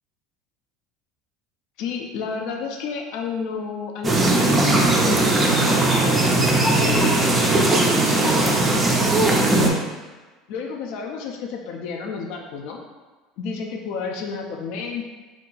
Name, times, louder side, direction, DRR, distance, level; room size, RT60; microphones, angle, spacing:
voice 1, 1.8-8.5 9.2-9.8 10.5-12.8 13.4-15.0, left 5 dB, 60° left, 2 dB, 0.4 m, -31 dB
sound 1, 4.0-9.7, right 2 dB, 15° right, 0.4 m, -18 dB
2.7 x 2.3 x 3.9 m, 1.3 s
cardioid pair, 155°, 0 cm